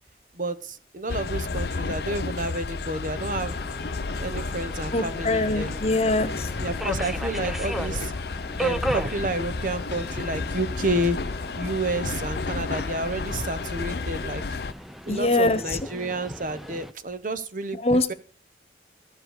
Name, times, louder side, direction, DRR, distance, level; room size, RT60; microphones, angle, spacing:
voice 1, 0.4-3.5 4.2-5.8 6.6-8.1 8.6-11.2 11.6-14.4 15.1-17.8 18.1-18.2, right 2 dB, 45° right, 12 dB, 1.0 m, -30 dB
sound 1, 1.1-14.7, left 3 dB, 60° left, 0.6 m, -32 dB
Subway metro underground, 3.1-16.9, equal, ahead, 0.7 m, -37 dB
voice 2, 4.9-6.5 15.1-15.8 17.8-18.1, left 2 dB, 35° left, 11 dB, 1.3 m, -23 dB
14.0 x 7.6 x 6.5 m, 0.40 s
head